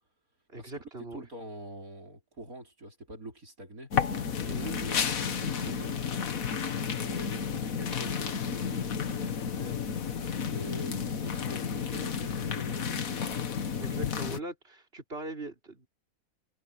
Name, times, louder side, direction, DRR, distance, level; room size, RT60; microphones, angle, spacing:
voice 1, 0.5-1.2 4.4-4.8 13.8-15.9, right 2 dB, 40° right, 5.0 m, -40 dB
voice 2, 1.1-3.9 4.4-6.1 6.8-9.8 10.2-13.1, right 1 dB, 65° right, 5.0 m, -45 dB
sound 1, 3.9-14.4, left 7 dB, 65° left, 1.7 m, -32 dB
omnidirectional pair, 1.6 m